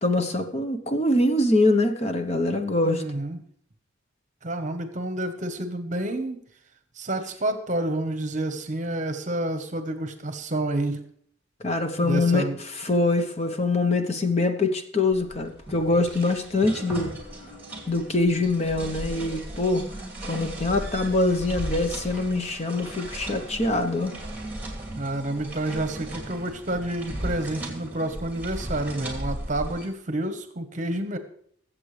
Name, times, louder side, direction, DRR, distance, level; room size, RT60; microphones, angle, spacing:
voice 1, 0.0-3.0 11.6-12.4 12.8-17.1 17.9-19.8 20.3-24.1, left 2 dB, 30° left, 6 dB, 0.9 m, -24 dB
voice 2, 2.8-3.4 4.4-6.4 7.0-11.0 12.0-12.6 25.0-31.2, right 1 dB, 40° right, 8 dB, 1.1 m, -29 dB
sound 1, 15.1-29.9, right 1 dB, 10° right, 2.7 m, -36 dB
21.5 x 7.7 x 3.3 m, 0.62 s
head